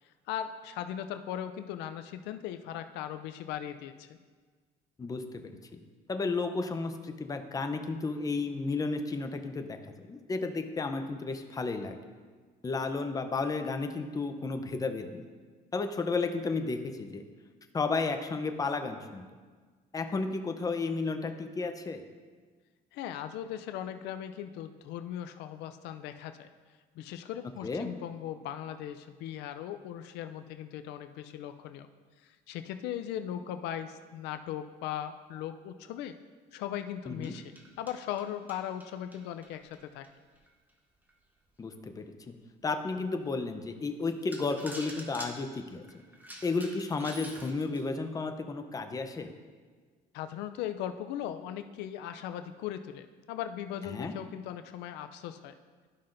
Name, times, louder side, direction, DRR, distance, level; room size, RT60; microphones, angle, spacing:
voice 1, 0.3-4.2 22.9-26.5 27.0-31.9 32.2-36.2 36.5-40.1 50.1-55.6, left 10 dB, 90° left, 9 dB, 0.4 m, -38 dB
voice 2, 5.0-5.5 6.1-9.8 10.1-12.0 12.6-15.3 15.7-17.2 17.7-19.2 19.9-22.0 27.6-27.9 37.1-37.4 41.6-42.3 42.6-45.8 46.4-49.3 53.9-54.1, left 3 dB, 20° left, 6 dB, 0.6 m, -33 dB
sound 1, 37.0-40.5 41.1-41.2 41.7-41.8 42.3-42.4 43.6-43.7 44.1-47.9, right 1 dB, 10° right, 1.0 m, -47 dB
12.5 x 5.6 x 2.6 m, 1.5 s
cardioid pair, 110°, 17 cm